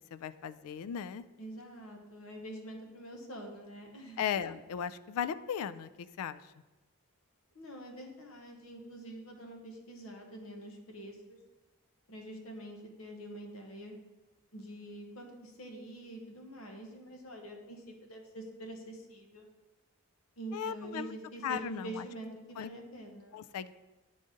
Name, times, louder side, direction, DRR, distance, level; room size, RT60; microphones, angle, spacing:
voice 1, 0.0-1.2 4.2-6.4 20.5-21.2 21.4-22.1 22.6-22.7 23.3-23.8, left 8 dB, 80° left, 15 dB, 0.3 m, -37 dB
voice 2, 1.4-4.5 7.5-11.4 12.1-13.9 14.5-19.5 20.4-23.4, right 1 dB, 65° left, 2 dB, 0.9 m, -46 dB
9.8 x 3.9 x 3.7 m, 1.1 s
head